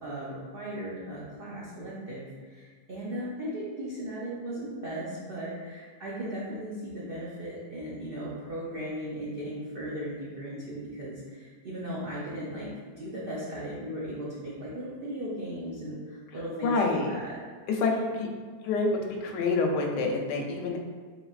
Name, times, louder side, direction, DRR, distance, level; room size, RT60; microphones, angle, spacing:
voice 1, 0.0-12.7 13.0-17.4 17.9-18.2, equal, 85° right, -7 dB, 0.4 m, -37 dB
voice 2, 16.6-17.1 17.7-18.3 18.6-18.9 19.2-20.8, left 3 dB, 80° left, 2 dB, 1.2 m, -27 dB
3.9 x 3.8 x 2.3 m, 1.5 s
omnidirectional pair, 1.8 m